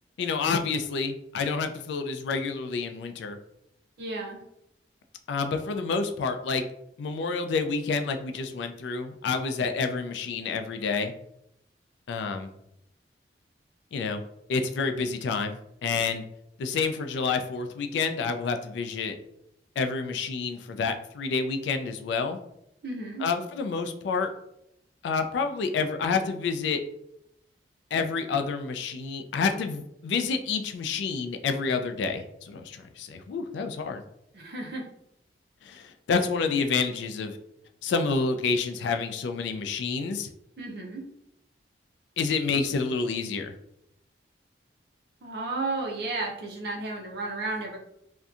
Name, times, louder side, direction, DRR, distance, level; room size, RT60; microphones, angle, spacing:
voice 1, 0.2-3.4 5.3-6.6 7.0-11.1 12.1-12.5 13.9-14.2 14.5-16.2 16.6-19.1 19.8-22.4 23.2-24.3 25.0-26.8 27.9-34.0 35.6-37.4 37.8-40.3 42.2-43.5, left 4 dB, 75° left, 7 dB, 0.3 m, -28 dB
voice 2, 4.0-4.4 22.8-23.3 34.3-34.8 40.6-41.0 45.2-47.8, right 2 dB, 60° right, -1 dB, 0.5 m, -33 dB
2.6 x 2.2 x 2.4 m, 0.79 s
head